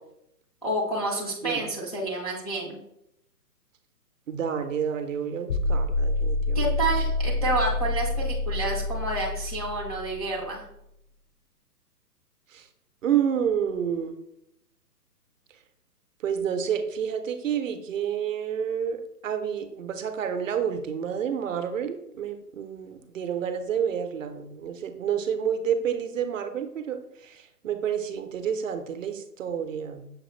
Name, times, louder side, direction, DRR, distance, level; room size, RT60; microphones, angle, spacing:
voice 1, 0.6-2.8 6.5-10.7, right 2 dB, 25° left, -6 dB, 0.4 m, -29 dB
voice 2, 4.3-6.6 12.5-12.6 13.0-14.1 16.2-30.0, right 8 dB, 55° right, 8 dB, 0.5 m, -29 dB
sound 1, 5.5-10.5, left 2 dB, 80° left, 0.6 m, -27 dB
6.4 x 2.4 x 3.0 m, 0.78 s
hypercardioid pair, 155°, 48 cm